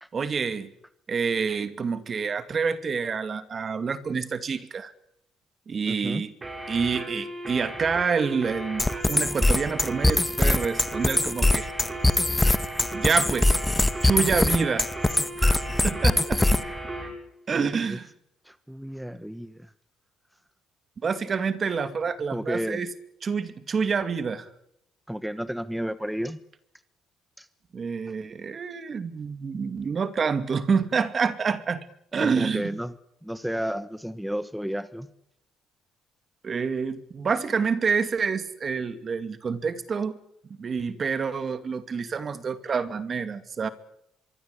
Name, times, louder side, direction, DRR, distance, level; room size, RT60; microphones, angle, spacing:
voice 1, 0.1-0.7 1.1-4.9 5.7-6.4 6.7-11.7 12.9-13.6 14.0-15.0 15.4-16.6 17.5-18.1 21.0-22.9 23.2-24.5 27.7-31.9 32.1-32.7 36.4-40.2 40.6-43.7, right 5 dB, 40° right, 12 dB, 2.4 m, -27 dB
voice 2, 5.9-6.2 17.5-18.0 18.4-19.7 22.3-22.8 25.1-26.4 27.4-27.5 32.2-32.9 33.2-35.1, equal, ahead, 13 dB, 1.3 m, -32 dB
sound 1, 6.4-17.2, right 1 dB, 25° right, 7.7 m, -36 dB
sound 2, 8.8-16.8, left 2 dB, 15° left, 1.5 m, -22 dB
24.0 x 24.0 x 8.5 m, 0.77 s
cardioid pair, 85°, 0 cm